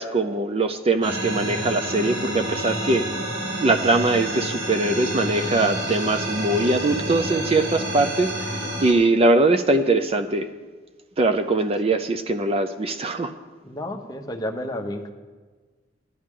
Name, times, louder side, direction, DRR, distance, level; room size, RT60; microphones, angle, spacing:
voice 1, 0.0-3.1 3.6-10.5 11.2-13.3, right 2 dB, 30° right, 7 dB, 0.5 m, -22 dB
sound 1, 1.0-8.9, right 1 dB, 75° right, 3.7 m, -29 dB
voice 2, 13.6-15.1, left 1 dB, 20° left, 3 dB, 1.0 m, -31 dB
15.0 x 11.0 x 3.7 m, 1.4 s
head